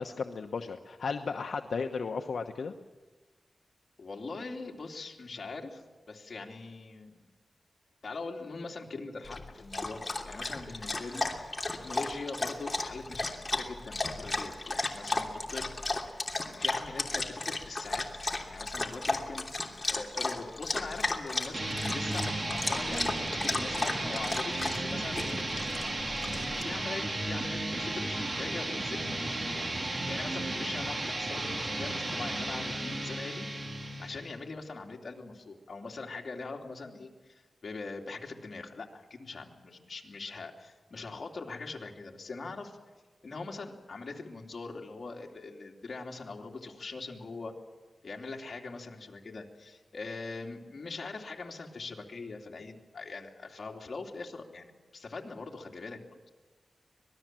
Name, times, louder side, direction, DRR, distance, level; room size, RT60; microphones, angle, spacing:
voice 1, 0.0-2.7, left 5 dB, 75° left, 4 dB, 1.1 m, -34 dB
voice 2, 4.0-7.2 8.0-11.5 11.8-15.7 16.6-19.4 19.9-25.4 26.6-33.5 34.0-42.8 43.2-47.5 48.0-56.0, left 3 dB, 55° left, 1 dB, 3.1 m, -42 dB
Dog, 9.2-26.6, left 2 dB, 25° left, 2.9 m, -34 dB
sound 1, 21.5-34.4, right 2 dB, 35° right, 2.9 m, -34 dB
25.5 x 20.0 x 7.7 m, 1.3 s
wide cardioid pair, 110°, 0 cm